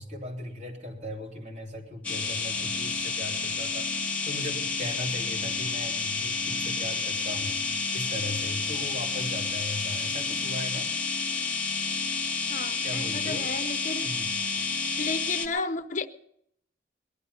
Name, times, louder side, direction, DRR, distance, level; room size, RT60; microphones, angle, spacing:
voice 1, 0.0-7.6 7.9-10.9 12.8-13.5 14.0-14.4, left 1 dB, 40° right, 3.4 m, -38 dB
sound 1, 2.0-15.5, left 4 dB, 10° left, 1.4 m, -30 dB
voice 2, 12.5-14.1 15.0-16.1, left 3 dB, 40° left, 0.8 m, -33 dB
19.0 x 12.0 x 5.5 m
head